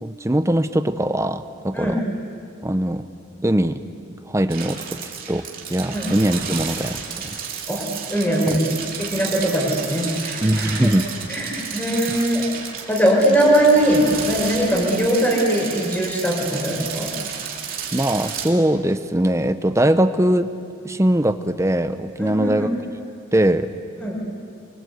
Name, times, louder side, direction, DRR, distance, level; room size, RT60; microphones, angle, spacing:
voice 1, 0.0-2.0 2.6-3.0 3.4-3.8 4.3-5.4 5.7-7.4 8.4-8.6 10.4-11.1 12.1-12.3 17.9-20.5 20.8-22.7 23.3-23.7, right 1 dB, 15° right, 11 dB, 0.8 m, -21 dB
sound 1, 4.5-18.5, right 7 dB, 45° right, 2.9 m, -32 dB
voice 2, 7.7-10.8 11.3-12.4 12.9-17.1 22.2-22.7 24.0-24.2, right 1 dB, 10° left, -2 dB, 5.4 m, -21 dB
28.5 x 24.0 x 8.3 m, 2.5 s
head